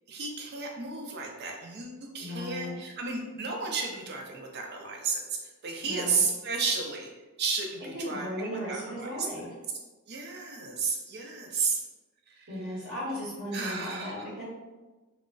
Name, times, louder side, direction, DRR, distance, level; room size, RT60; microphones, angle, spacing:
voice 1, 0.1-7.1 7.4-9.3 10.1-11.8 12.3-12.9 13.5-14.3, right 4 dB, 50° right, 1 dB, 0.5 m, -33 dB
voice 2, 2.2-2.7 5.8-6.2 7.9-9.5 12.5-14.4, equal, 75° right, -11 dB, 1.1 m, -36 dB
3.8 x 2.0 x 2.2 m, 1.2 s
head